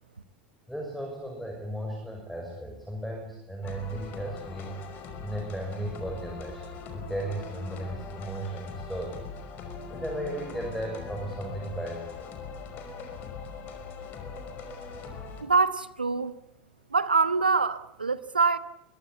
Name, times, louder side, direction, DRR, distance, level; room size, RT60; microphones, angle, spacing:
voice 1, 0.7-4.7 5.2-12.3, right 1 dB, ahead, 2 dB, 6.0 m, -36 dB
sound 1, 3.6-15.4, left 4 dB, 40° left, 5.4 m, -41 dB
voice 2, 15.4-16.3 16.9-18.6, right 4 dB, 80° right, 14 dB, 1.2 m, -24 dB
23.0 x 22.5 x 8.3 m, 0.80 s
figure-of-eight pair, 80°, 5 cm